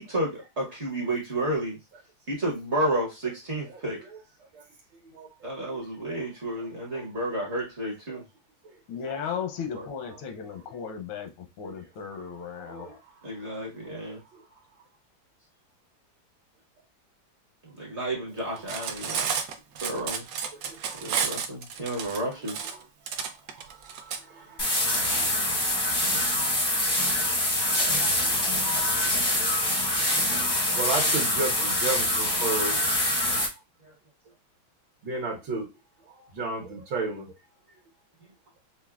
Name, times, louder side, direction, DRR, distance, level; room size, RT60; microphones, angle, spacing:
voice 1, 0.0-1.8 2.3-4.0 5.4-8.2 9.7-9.9 13.2-14.2 17.6-19.3 19.8-20.2 21.0-22.6, right 1 dB, 45° right, 1.0 m, -31 dB
voice 2, 5.7-6.3 6.9-7.0 8.1-8.2 9.1-9.2 10.0-10.2 11.6-11.8 12.5-13.0 13.8-14.4 18.5-19.3 19.8-20.0 20.5-21.4 22.0-22.2 22.5-22.8 23.1-25.8 27.8-28.6 28.9-29.7 30.1-33.4 35.0-35.7 36.1-37.3, right 3 dB, 70° right, 1.7 m, -36 dB
voice 3, 8.9-11.3 11.6-12.9, left 7 dB, 85° left, 1.5 m, -35 dB
Cutlery silverware, 18.6-24.2, right 6 dB, 85° right, 0.7 m, -31 dB
sound 1, 24.6-33.5, left 1 dB, 30° left, 0.4 m, -25 dB
5.6 x 2.1 x 2.3 m
omnidirectional pair, 2.2 m